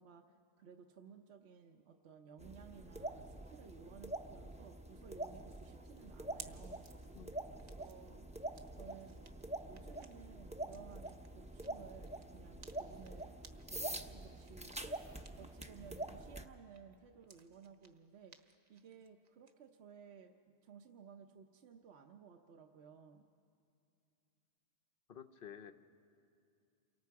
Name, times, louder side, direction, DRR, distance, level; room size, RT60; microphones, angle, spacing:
voice 1, 0.0-7.2 7.8-8.3 8.8-9.2 9.7-13.4 13.7-14.9 15.4-18.4 18.7-20.3 20.6-23.2, right 6 dB, 70° right, 3 dB, 1.1 m, -57 dB
sound 1, 2.4-16.4, right 1 dB, 5° right, 0.6 m, -46 dB
sound 2, 5.2-16.0 16.3-19.5, right 4 dB, 40° right, 0.9 m, -61 dB
voice 2, 25.1-25.7, left 8 dB, 55° left, 7 dB, 1.0 m, -51 dB
28.5 x 23.5 x 4.7 m, 2.5 s
omnidirectional pair, 1.2 m